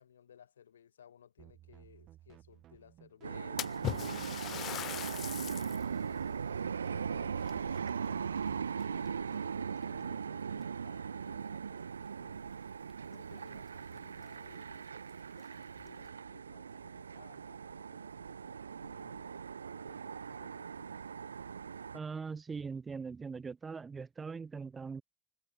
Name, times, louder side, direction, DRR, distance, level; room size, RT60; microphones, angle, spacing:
voice 1, 0.0-3.9 4.2-8.5 8.9-11.9 12.2-12.4 13.1-14.9 15.8-19.4 19.7-21.0, left 8 dB, 85° left, 3.4 m, -59 dB
sound 1, 1.4-8.7, right 13 dB, 50° right, 6.7 m, -58 dB
sound 2, 3.2-22.0, right 6 dB, 90° right, 0.6 m, -39 dB
Splash splatter, 3.6-5.9 6.4-6.5 7.4-8.4 8.8-9.2 10.0-10.1 10.6-10.7 12.9-13.0 13.3-13.4 14.0-14.1 14.5-14.6 15.3-15.9, left 12 dB, 50° left, 0.7 m, -40 dB
voice 2, 21.9-25.0, right 5 dB, 25° right, 0.7 m, -41 dB
hypercardioid pair, 65°, 0 cm